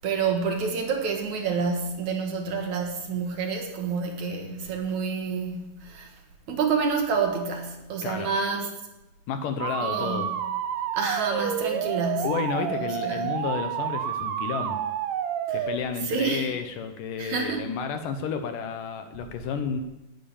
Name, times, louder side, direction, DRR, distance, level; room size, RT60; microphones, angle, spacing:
voice 1, 0.0-6.1 6.5-8.7 9.8-10.3 10.9-12.3 12.8-13.2 15.5-15.7 16.0-16.5 17.2-17.7, right 5 dB, 55° right, 3 dB, 2.8 m, -28 dB
voice 2, 9.3-10.3 12.2-14.8 15.5-19.8, left 6 dB, 70° left, 8 dB, 2.4 m, -31 dB
sound 1, 9.6-15.8, right 9 dB, 75° right, 1.6 m, -29 dB
18.5 x 9.3 x 7.1 m, 0.98 s
omnidirectional pair, 4.3 m